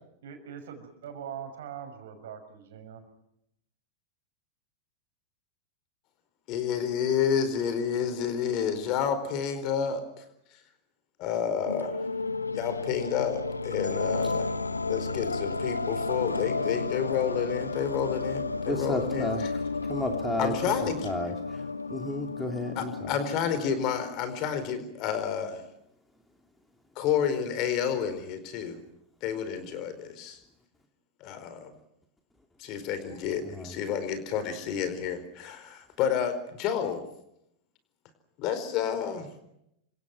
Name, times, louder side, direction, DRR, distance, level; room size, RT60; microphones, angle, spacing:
voice 1, 0.2-3.0, right 8 dB, 60° right, 6 dB, 6.2 m, -42 dB
voice 2, 6.5-10.0 11.2-12.0 12.5-14.5 14.9-19.5 20.4-21.1 22.7-25.6 27.0-28.8 29.2-30.4 31.2-31.7 32.6-37.0 38.4-39.3, left 8 dB, 40° left, 11 dB, 4.6 m, -30 dB
sound 1, 11.6-24.6, left 3 dB, 80° left, 1.0 m, -32 dB
voice 3, 18.7-19.4 19.9-20.5 20.8-21.6 21.9-22.9 33.5-33.8, left 1 dB, 5° left, 4 dB, 2.5 m, -32 dB
28.5 x 25.5 x 6.1 m, 0.79 s
figure-of-eight pair, 90°, 0 cm